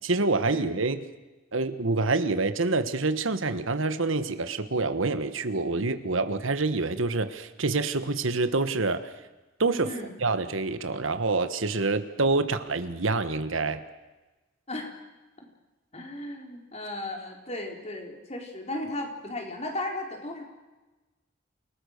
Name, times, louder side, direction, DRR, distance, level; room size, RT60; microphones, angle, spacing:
voice 1, 0.0-1.0 1.5-9.1 9.6-9.9 10.2-13.8, right 3 dB, 80° right, 10 dB, 1.4 m, -27 dB
voice 2, 9.8-10.1 14.7-14.9 15.4-15.5 15.9-20.4, left 1 dB, 35° left, 2 dB, 4.0 m, -35 dB
29.0 x 19.5 x 6.6 m, 1.1 s
head